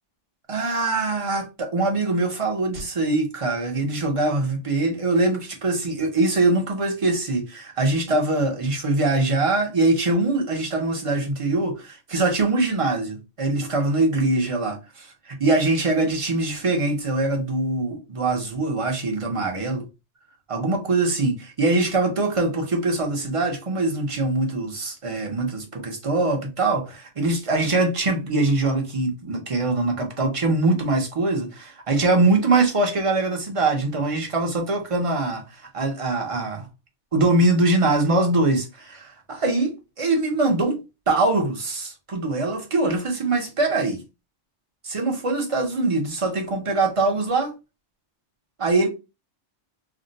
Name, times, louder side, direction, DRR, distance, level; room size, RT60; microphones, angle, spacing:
voice 1, 0.5-19.9 20.5-35.4 35.7-36.7 37.1-40.8 41.1-44.0 44.8-47.5 48.6-48.9, right 2 dB, 35° right, 0.6 m, -23 dB
2.6 x 2.1 x 3.8 m
omnidirectional pair, 1.2 m